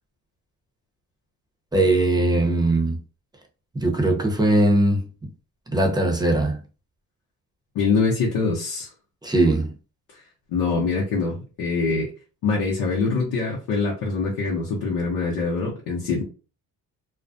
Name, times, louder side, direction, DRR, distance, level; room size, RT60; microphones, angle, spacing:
voice 1, 1.7-3.0 3.7-5.0 5.7-6.6 9.2-9.7, right 1 dB, 10° right, 0.8 m, -20 dB
voice 2, 7.7-8.9 10.5-12.1 12.4-16.2, left 4 dB, 75° left, 0.8 m, -24 dB
2.4 x 2.1 x 2.5 m
supercardioid pair, 75°, 37 cm